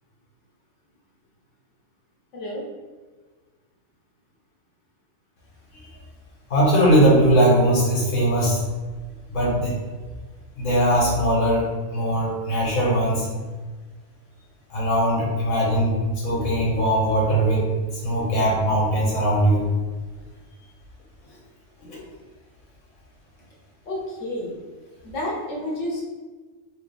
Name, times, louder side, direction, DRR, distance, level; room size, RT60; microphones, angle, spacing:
voice 1, 2.3-2.6 23.9-24.6 25.0-26.0, left 1 dB, 60° left, -3 dB, 1.3 m, -30 dB
voice 2, 6.5-8.6 9.3-9.7 10.6-13.2 14.7-16.0 16.2-17.6 17.9-19.6 21.9-22.0, right 1 dB, 85° left, -4 dB, 1.7 m, -20 dB
3.4 x 3.1 x 3.4 m, 1.3 s
omnidirectional pair, 1.4 m